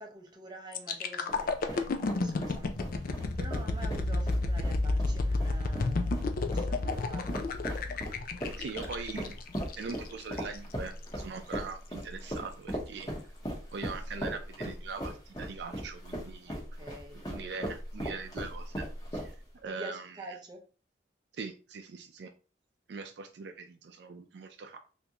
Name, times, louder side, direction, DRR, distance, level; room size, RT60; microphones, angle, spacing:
voice 1, 0.0-7.5 16.5-17.4 19.7-20.7, right 1 dB, 25° right, 0.6 m, -48 dB
sound 1, 0.7-10.6 11.0-11.2, left 2 dB, 55° left, 0.4 m, -31 dB
sound 2, 1.3-19.6, equal, 20° left, 1.0 m, -39 dB
voice 2, 8.6-9.4 9.8-13.1 13.7-16.6 17.1-18.9 19.1-20.3 21.4-22.3 22.9-24.8, right 4 dB, 65° right, 0.4 m, -41 dB
3.5 x 2.6 x 2.9 m
head